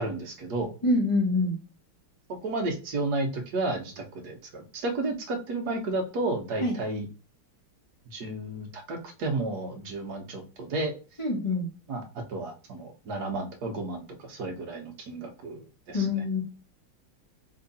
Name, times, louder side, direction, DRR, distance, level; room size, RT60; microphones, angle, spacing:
voice 1, 0.0-0.7 2.4-7.1 8.1-10.9 11.9-16.1, right 2 dB, 60° right, 4 dB, 1.3 m, -32 dB
voice 2, 0.8-1.5 6.6-6.7 11.2-11.7 15.9-16.4, left 2 dB, 15° left, -2 dB, 1.2 m, -25 dB
3.6 x 3.5 x 4.0 m, 0.34 s
omnidirectional pair, 2.3 m